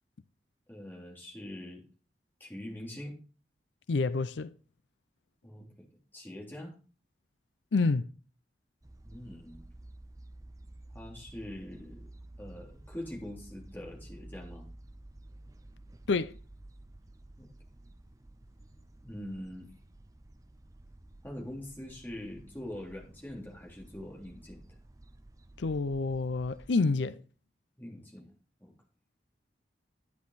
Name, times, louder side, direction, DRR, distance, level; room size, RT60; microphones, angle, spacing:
voice 1, 0.7-1.8 2.4-3.2 5.4-5.7 6.1-6.7 9.0-9.7 10.9-12.1 12.4-14.7 17.4-17.5 19.0-19.7 21.2-24.6 27.8-28.3 28.6-28.7, left 1 dB, 10° left, 3.5 m, -43 dB
voice 2, 3.9-4.5 7.7-8.1 16.1-16.3 25.6-27.2, left 3 dB, 85° left, 0.5 m, -28 dB
sound 1, 8.8-26.7, right 1 dB, 20° right, 0.5 m, -52 dB
10.5 x 9.5 x 4.1 m
head